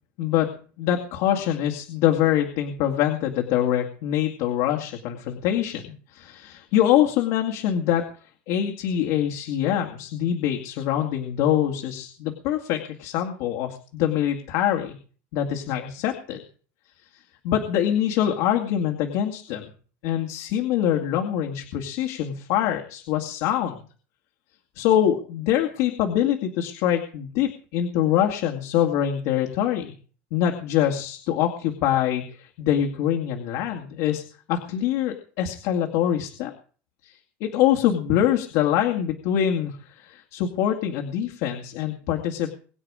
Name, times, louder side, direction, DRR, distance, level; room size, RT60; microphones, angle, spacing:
voice 1, 0.2-0.5 0.8-8.0 8.5-14.9 15.3-16.4 17.4-19.6 20.0-23.8 24.8-29.9 30.3-34.2 34.5-36.5 37.0-37.1 37.4-42.5, left 10 dB, 70° left, 2 dB, 2.3 m, -24 dB
23.0 x 9.0 x 5.0 m, 0.42 s
cardioid pair, 145°, 6 cm